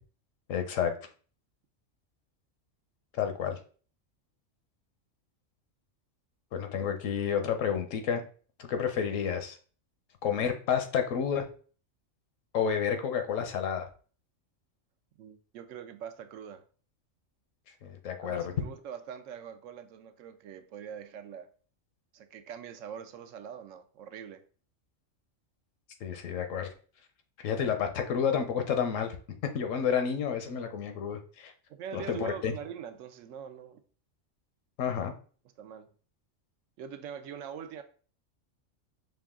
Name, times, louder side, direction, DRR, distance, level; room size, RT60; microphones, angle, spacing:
voice 1, 0.5-0.9 3.1-3.6 6.5-8.2 8.6-9.6 10.2-11.4 12.5-13.9 17.8-18.5 26.0-26.7 27.4-29.2 29.5-31.5 31.9-32.5 34.8-35.1, left 7 dB, 85° left, 1.1 m, -30 dB
voice 2, 15.2-16.6 18.2-21.5 22.1-24.4 31.7-33.8 35.6-35.9 36.8-37.8, right 8 dB, 85° right, 1.0 m, -43 dB
5.3 x 2.3 x 3.6 m
omnidirectional pair, 1.3 m